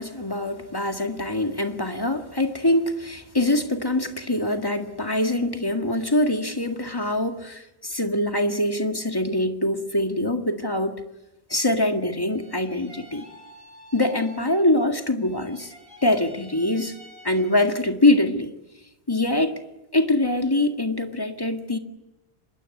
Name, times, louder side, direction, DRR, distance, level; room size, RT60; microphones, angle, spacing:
voice 1, 0.0-11.0 11.5-13.3 13.9-15.7 16.0-16.9 17.2-18.5 19.1-19.5 19.9-21.8, left 1 dB, 20° left, 5 dB, 2.0 m, -23 dB
sound 1, 12.3-14.9 15.2-17.9, equal, 60° right, 5.7 m, -49 dB
25.5 x 21.0 x 9.6 m, 0.95 s
omnidirectional pair, 1.0 m